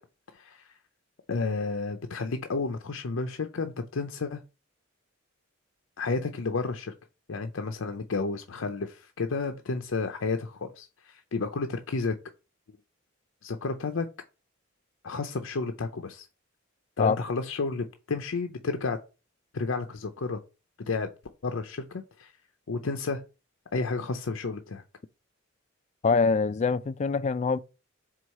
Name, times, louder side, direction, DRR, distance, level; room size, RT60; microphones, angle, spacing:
voice 1, 0.3-0.6 1.3-4.4 6.0-6.9 7.3-12.1 13.4-14.1 15.0-16.2 17.0-19.0 19.5-20.4 20.9-21.1 21.4-22.3 22.7-23.2 23.7-24.8, left 4 dB, 75° left, 0.6 m, -31 dB
voice 2, 26.0-27.6, left 4 dB, 35° left, 0.3 m, -24 dB
4.7 x 3.7 x 5.4 m
head